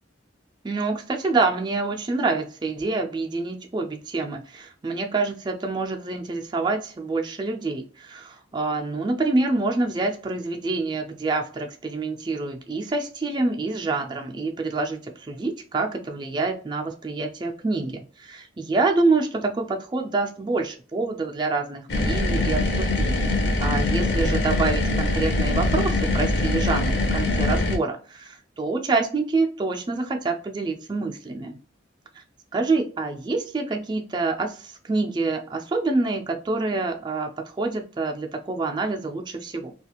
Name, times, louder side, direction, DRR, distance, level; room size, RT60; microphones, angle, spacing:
voice 1, 0.6-31.6 32.2-32.3 32.5-39.7, right 3 dB, 25° right, 4 dB, 0.3 m, -27 dB
sound 1, 21.9-27.8, left 2 dB, 55° left, 0.6 m, -23 dB
2.4 x 2.3 x 2.8 m, 0.40 s
head